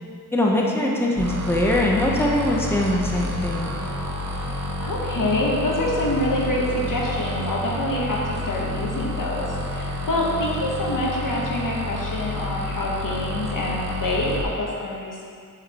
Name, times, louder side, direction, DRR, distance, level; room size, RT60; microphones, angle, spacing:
voice 1, 0.3-3.8, left 1 dB, 5° left, -2 dB, 1.0 m, -22 dB
sound 1, 1.1-14.4, left 1 dB, 55° right, 0.9 m, -29 dB
voice 2, 4.5-15.2, left 1 dB, 65° left, -3 dB, 1.4 m, -26 dB
6.5 x 6.5 x 4.4 m, 2.2 s
wide cardioid pair, 75°, 34 cm